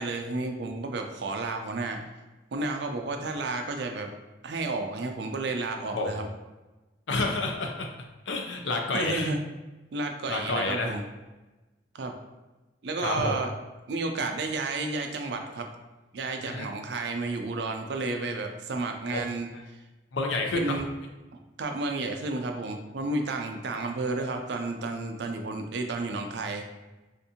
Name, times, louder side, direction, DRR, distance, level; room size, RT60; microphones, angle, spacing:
voice 1, 0.0-2.0 2.5-4.1 4.4-6.3 8.9-9.4 9.9-11.0 11.9-12.2 12.8-13.5 13.9-15.7 16.1-19.5 20.5-20.9 21.6-26.7, right 3 dB, 60° right, 4 dB, 0.4 m, -31 dB
voice 2, 5.9-6.3 7.1-7.9 8.3-9.3 10.3-10.9 13.0-13.4 16.4-16.7 19.1-19.2 19.5-19.6 20.1-20.8, left 2 dB, 75° left, 3 dB, 0.5 m, -29 dB
3.5 x 2.6 x 2.7 m, 1.1 s
head